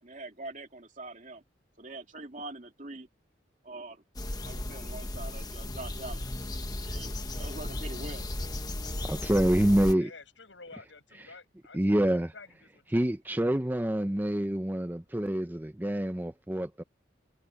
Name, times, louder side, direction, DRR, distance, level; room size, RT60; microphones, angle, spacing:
voice 1, 0.0-1.4 1.8-3.1 3.6-4.0 4.4-6.2 6.8-8.3, right 2 dB, 40° right, 2.6 m, -43 dB
sound 1, 4.1-9.9, left 1 dB, 20° left, 1.1 m, -35 dB
voice 2, 9.1-10.1 11.2-11.3 11.7-12.3 12.9-16.8, right 1 dB, 10° right, 0.6 m, -27 dB
voice 3, 10.0-13.1, left 3 dB, 80° left, 7.0 m, -51 dB
head